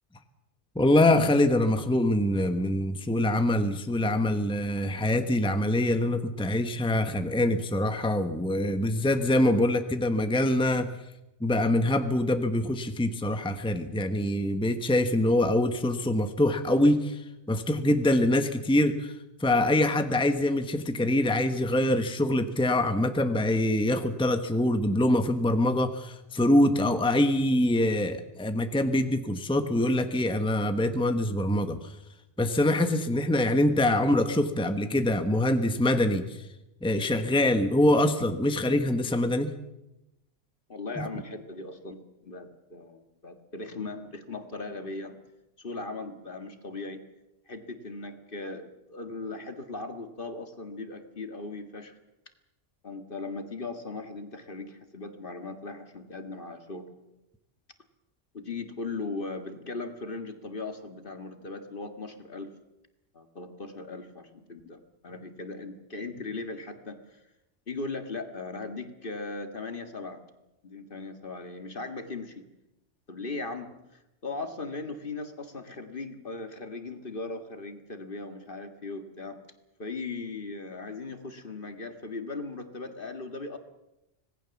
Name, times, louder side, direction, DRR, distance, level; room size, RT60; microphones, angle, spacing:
voice 1, 0.7-10.9 11.4-17.2 17.5-19.1 19.4-31.8 32.4-36.4 36.8-39.5 41.0-41.1, left 1 dB, 5° left, 8 dB, 1.2 m, -24 dB
voice 2, 40.7-45.2 45.6-47.0 47.5-52.0 52.8-56.9 58.3-62.5 63.1-67.2 67.7-70.2 70.6-72.5 73.1-79.4 79.8-83.6, left 3 dB, 45° left, 7 dB, 2.0 m, -38 dB
25.5 x 19.0 x 7.1 m, 0.92 s
omnidirectional pair, 1.2 m